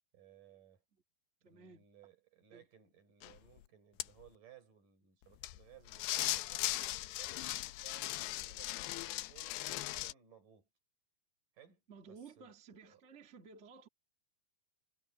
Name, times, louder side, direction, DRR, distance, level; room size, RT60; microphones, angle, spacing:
voice 1, 0.1-0.8 1.4-8.7 9.0-10.7 11.5-12.5 12.9-13.0, right 9 dB, 50° right, 7.1 m, -61 dB
voice 2, 1.4-1.8 2.5-2.6 11.9-13.9, right 5 dB, 25° right, 1.7 m, -55 dB
sound 1, 3.2-3.3 4.0-4.1 5.4-5.6 5.9-10.1, left 17 dB, 90° left, 2.8 m, -38 dB
omnidirectional pair, 4.8 m